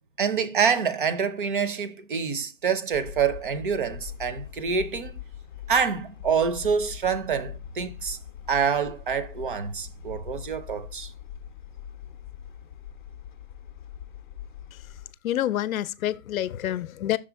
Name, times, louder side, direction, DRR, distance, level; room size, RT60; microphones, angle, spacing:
voice 1, 0.2-5.2 5.7-8.2 8.5-11.1, right 6 dB, 40° right, 0.5 m, -26 dB
sound 1, 2.9-15.1, left 10 dB, 40° left, 0.5 m, -42 dB
voice 2, 14.7-17.2, left 12 dB, 85° left, 0.6 m, -28 dB
6.1 x 4.2 x 4.4 m
hypercardioid pair, 175°, 41 cm